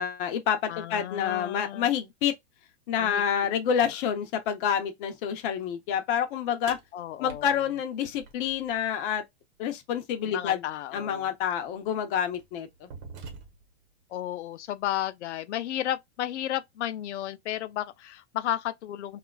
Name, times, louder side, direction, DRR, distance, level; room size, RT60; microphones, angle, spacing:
voice 1, 0.0-2.3 2.9-6.8 7.2-9.2 9.6-10.6 10.9-12.9, left 8 dB, 50° left, 0.8 m, -28 dB
voice 2, 0.7-1.9 3.0-3.2 6.9-7.6 10.2-11.3 14.1-19.2, left 12 dB, 85° left, 0.6 m, -33 dB
sound 1, 6.7-8.8 10.7-10.8 11.7-11.9 12.3-13.8, right 5 dB, 50° right, 0.9 m, -45 dB
2.9 x 2.4 x 2.2 m
hypercardioid pair, 135°, 34 cm